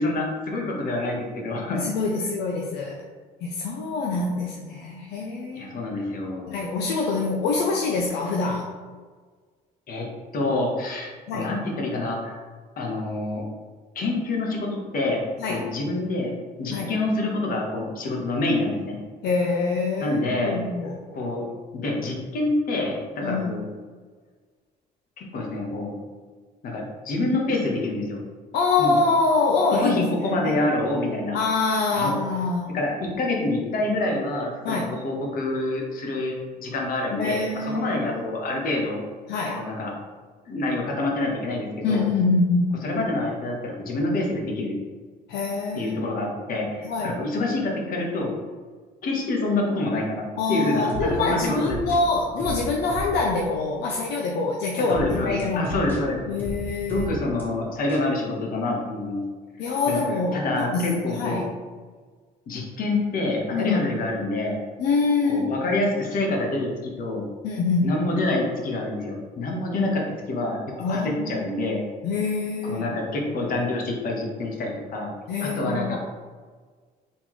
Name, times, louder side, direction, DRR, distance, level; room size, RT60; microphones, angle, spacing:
voice 1, 0.0-1.9 5.5-6.6 9.9-10.1 10.3-12.4 12.8-13.4 13.9-15.2 15.5-19.0 20.0-20.6 21.1-21.4 21.7-23.6 25.2-25.9 26.6-28.2 28.8-29.0 29.7-31.4 31.9-32.1 32.7-36.3 36.6-39.0 39.6-39.9 40.5-42.1 42.8-44.8 45.7-48.3 49.0-51.8 54.9-56.2 56.9-59.2 59.6-60.0 60.3-61.4 62.5-64.6 65.3-67.3 67.8-70.6 70.9-71.8 72.6-75.1 75.4-76.0, left 2 dB, 60° left, 0 dB, 1.2 m, -27 dB
voice 2, 1.7-3.0 3.4-5.7 6.5-8.7 11.3-11.5 15.4-15.6 16.7-16.9 19.2-21.0 23.2-23.5 28.5-30.6 31.3-32.8 34.6-34.9 37.1-38.3 39.3-39.6 41.8-42.8 45.3-46.0 46.8-47.2 50.4-55.7 56.3-57.1 59.6-60.4 60.7-61.4 63.5-63.8 64.8-65.6 67.4-68.0 70.8-71.7 72.0-72.9 75.3-76.0, left 3 dB, 75° left, 0 dB, 0.6 m, -25 dB
sound 1, 50.9-53.4 53.9-54.1 54.9-57.4 57.9-58.1, right 2 dB, 10° left, 1.2 m, -34 dB
4.1 x 3.8 x 3.1 m, 1.5 s
cardioid pair, 110°, 17 cm